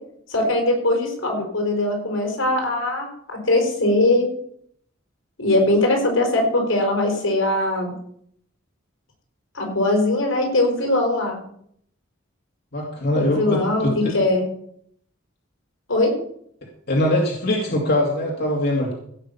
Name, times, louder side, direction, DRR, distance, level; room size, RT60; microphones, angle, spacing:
voice 1, 0.3-4.3 5.4-7.9 9.5-11.4 13.1-14.4 15.9-16.1, left 2 dB, 85° left, 2 dB, 4.8 m, -21 dB
voice 2, 12.7-14.1 16.9-18.9, left 1 dB, 55° left, -1 dB, 2.4 m, -22 dB
16.5 x 6.4 x 7.0 m, 0.68 s
head